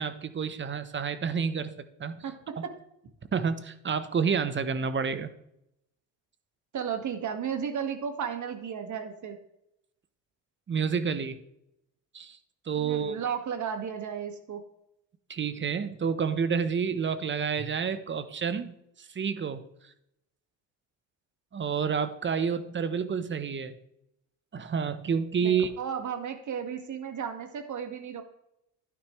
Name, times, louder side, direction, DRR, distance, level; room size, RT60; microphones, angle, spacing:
voice 1, 0.0-1.7 2.0-2.2 2.6-2.7 3.3-5.3 10.7-11.4 12.1-12.4 12.7-13.1 15.3-19.6 21.5-23.7 24.5-25.7, right 6 dB, 30° right, 12 dB, 0.9 m, -29 dB
voice 2, 2.2-2.7 6.7-9.4 12.8-14.6 25.4-28.2, right 7 dB, 50° right, 6 dB, 1.8 m, -34 dB
11.5 x 9.6 x 3.2 m, 0.81 s
supercardioid pair, 85°, 38 cm